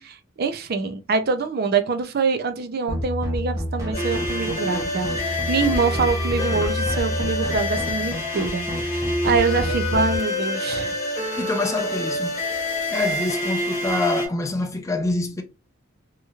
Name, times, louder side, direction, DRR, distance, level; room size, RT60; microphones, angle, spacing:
voice 1, 0.0-11.0, right 4 dB, 50° right, 0.4 m, -25 dB
sound 1, 2.9-10.2, equal, 15° right, 0.8 m, -29 dB
sound 2, 3.9-14.3, left 1 dB, 35° left, 1.0 m, -27 dB
voice 2, 11.4-12.4 12.9-15.4, left 2 dB, 15° left, 0.4 m, -26 dB
2.9 x 2.8 x 2.4 m
head